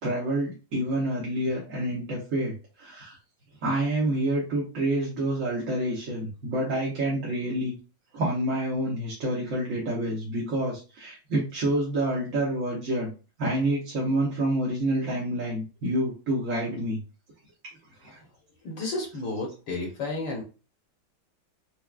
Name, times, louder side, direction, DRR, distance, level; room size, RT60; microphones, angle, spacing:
voice 1, 0.0-3.2 3.6-7.7 8.1-13.1 13.4-17.0 18.0-18.2, right 1 dB, 50° right, -5 dB, 1.1 m, -28 dB
voice 2, 18.6-20.4, left 2 dB, 70° left, 0 dB, 1.5 m, -32 dB
4.6 x 2.3 x 2.3 m, 0.32 s
omnidirectional pair, 2.1 m